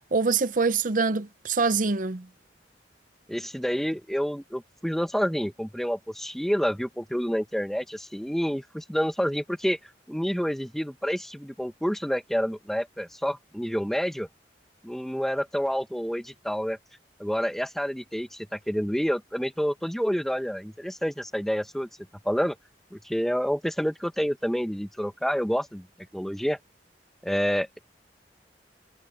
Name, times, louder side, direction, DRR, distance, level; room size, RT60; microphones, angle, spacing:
voice 1, 0.1-2.3, right 4 dB, 50° right, 0.7 m, -24 dB
voice 2, 3.3-9.8 10.1-14.3 14.8-16.8 17.2-21.9 22.2-22.6 22.9-25.9 26.1-26.6 27.2-27.8, equal, ahead, 1.0 m, -28 dB
head